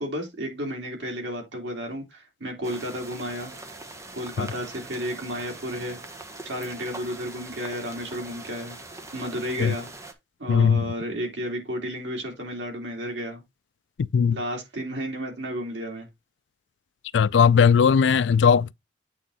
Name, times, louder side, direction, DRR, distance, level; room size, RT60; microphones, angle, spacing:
voice 1, 0.0-3.5 4.1-6.0 6.4-8.8 9.1-9.9 10.4-13.4 14.3-16.1, equal, 85° right, 3.1 m, -32 dB
sound 1, 2.6-10.1, right 2 dB, 15° right, 1.0 m, -42 dB
voice 2, 10.5-10.9 14.0-14.4 17.1-18.7, left 6 dB, 90° left, 0.4 m, -18 dB
8.5 x 3.6 x 4.1 m
head